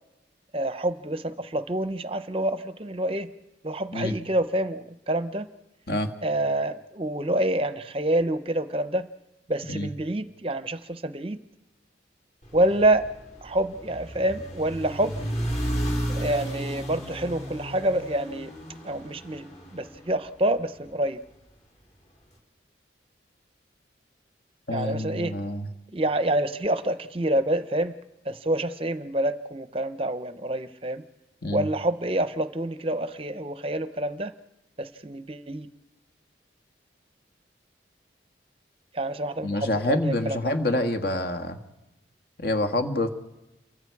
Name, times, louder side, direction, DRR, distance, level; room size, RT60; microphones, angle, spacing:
voice 1, 0.5-3.3 3.6-5.5 6.2-9.1 9.5-11.4 12.5-13.0 13.4-15.1 16.1-18.5 18.8-21.2 24.7-25.3 25.9-27.9 28.3-31.0 31.5-34.3 34.8-35.7 38.9-40.4, right 1 dB, 30° right, 11 dB, 0.7 m, -27 dB
sound 1, 12.4-20.8, equal, 40° left, 4.2 m, -33 dB
voice 2, 24.7-25.7 31.4-31.7 39.4-41.6 42.4-43.1, left 1 dB, 55° left, 5 dB, 1.7 m, -27 dB
29.0 x 23.5 x 4.7 m, 0.99 s
head